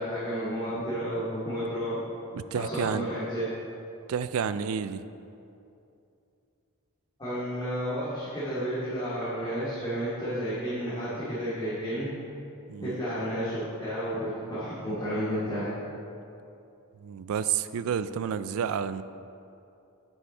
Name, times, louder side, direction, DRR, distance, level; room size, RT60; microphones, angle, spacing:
voice 1, 0.0-2.0 2.5-3.5 7.2-12.1 12.8-15.7, equal, 20° left, -14 dB, 2.2 m, -31 dB
voice 2, 2.3-3.1 4.1-5.0 12.7-13.0 17.0-19.0, right 7 dB, 70° right, 13 dB, 0.3 m, -30 dB
9.9 x 6.4 x 4.3 m, 2.7 s
head